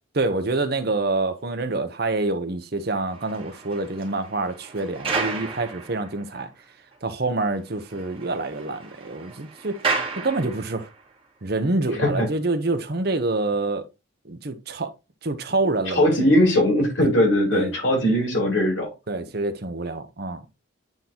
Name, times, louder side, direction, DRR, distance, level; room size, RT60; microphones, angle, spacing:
voice 1, 0.1-6.5 7.0-9.8 10.2-10.9 11.4-13.8 14.2-14.9 15.2-16.1 17.0-17.1 17.5-17.7 19.1-20.5, right 2 dB, 50° right, 0.9 m, -26 dB
sound 1, 2.9-6.6 6.9-7.0 7.4-7.5 7.7-11.0 11.7-11.9, right 4 dB, 25° right, 2.4 m, -33 dB
voice 2, 15.9-18.9, left 1 dB, 70° left, 3.4 m, -20 dB
9.0 x 4.0 x 2.9 m
head